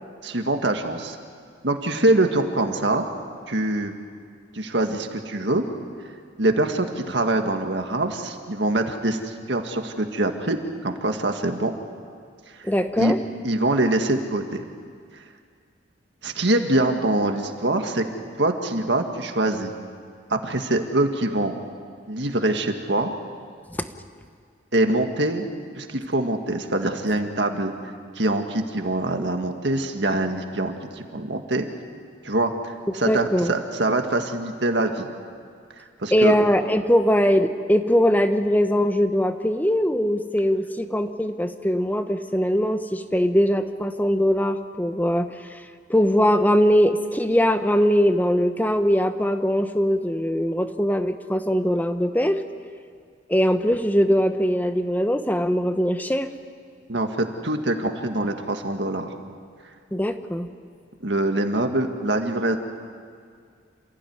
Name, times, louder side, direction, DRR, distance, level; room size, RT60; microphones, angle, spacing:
voice 1, 0.2-1.2 1.6-3.0 3.5-3.9 4.5-5.6 6.4-11.7 12.6-12.7 13.0-13.1 13.4-14.6 16.2-18.0 18.4-19.7 20.3-21.5 22.1-23.1 24.7-25.5 25.8-27.7 28.2-31.7 32.2-35.1 36.0-36.3 56.9-59.1 61.0-62.6, right 2 dB, 65° right, 5 dB, 2.0 m, -24 dB
voice 2, 12.6-13.2 23.8-23.9 33.1-33.5 36.1-45.6 45.9-52.4 53.3-56.3 59.9-60.5, equal, 10° left, 8 dB, 1.0 m, -21 dB
28.0 x 15.5 x 9.6 m, 2.2 s
head